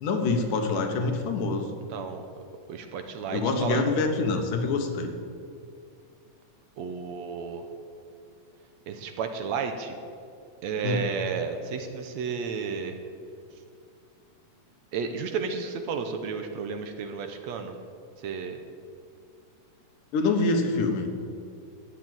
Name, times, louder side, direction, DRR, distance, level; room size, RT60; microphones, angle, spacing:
voice 1, 0.0-1.7 3.3-5.1 10.8-11.0 20.1-21.1, left 3 dB, 85° left, 5 dB, 2.9 m, -25 dB
voice 2, 1.9-2.3 2.7-3.8 6.8-7.6 8.9-10.0 10.6-13.0 14.9-17.7 18.2-18.6, right 5 dB, 70° right, 6 dB, 1.9 m, -32 dB
12.5 x 8.4 x 8.9 m, 2.4 s
omnidirectional pair, 3.6 m